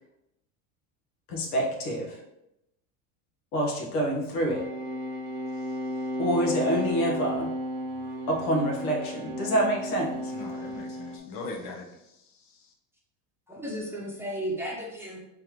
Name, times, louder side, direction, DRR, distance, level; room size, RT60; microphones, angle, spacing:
voice 1, 1.3-2.2 3.5-4.6 6.2-7.5 8.3-10.3, right 1 dB, 85° left, -1 dB, 1.3 m, -27 dB
sound 1, 4.5-11.2, equal, 70° right, 0.9 m, -33 dB
voice 2, 10.3-12.7, left 3 dB, 65° left, 2 dB, 1.0 m, -41 dB
voice 3, 13.5-15.2, equal, 5° right, -4 dB, 0.8 m, -34 dB
3.8 x 3.3 x 3.0 m, 0.86 s
supercardioid pair, 120°, 43 cm